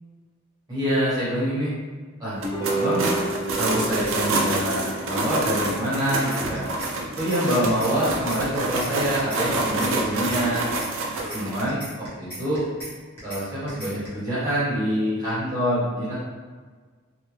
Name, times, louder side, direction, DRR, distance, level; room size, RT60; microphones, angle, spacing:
voice 1, 0.7-1.7 2.2-2.4 2.7-3.1 3.6-6.6 7.2-10.6 11.3-12.7 13.2-16.1, equal, 20° right, -10 dB, 1.3 m, -26 dB
sound 1, 2.3-8.9, right 3 dB, 45° right, 0.8 m, -33 dB
sound 2, 2.4-11.6, right 2 dB, 80° right, 0.5 m, -27 dB
sound 3, 6.3-6.9 7.2-7.4 7.7-8.9 9.2-9.4 9.7-10.9 11.2-11.4 11.7-12.9 13.2-13.4 13.7-14.1, equal, 10° left, 1.0 m, -37 dB
3.2 x 2.2 x 3.3 m, 1.5 s
head